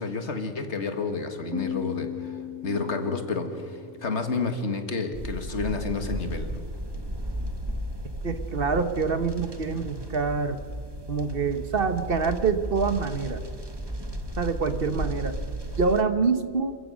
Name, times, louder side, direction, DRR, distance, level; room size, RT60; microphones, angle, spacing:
voice 1, 0.0-6.6 9.7-9.9, left 4 dB, 70° left, 7 dB, 2.0 m, -30 dB
Piano, 1.5-5.0, left 7 dB, 75° right, 1.9 m, -37 dB
sound 1, 5.1-16.0, right 1 dB, 20° right, 1.4 m, -34 dB
voice 2, 8.2-10.6 11.1-13.4 14.4-15.3 15.8-16.8, right 5 dB, 55° right, 10 dB, 1.3 m, -26 dB
27.5 x 15.0 x 6.3 m, 2.3 s
omnidirectional pair, 1.2 m